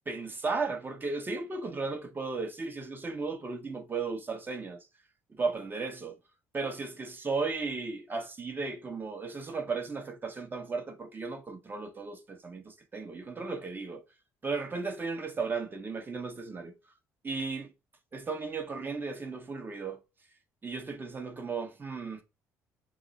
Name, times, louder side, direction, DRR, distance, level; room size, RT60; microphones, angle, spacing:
voice 1, 0.1-4.8 5.4-6.2 6.5-14.0 14.4-16.7 17.2-17.7 18.1-20.0 20.6-22.2, right 4 dB, 30° right, 1.2 m, -35 dB
6.1 x 2.1 x 4.0 m
hypercardioid pair, 60°, 7 cm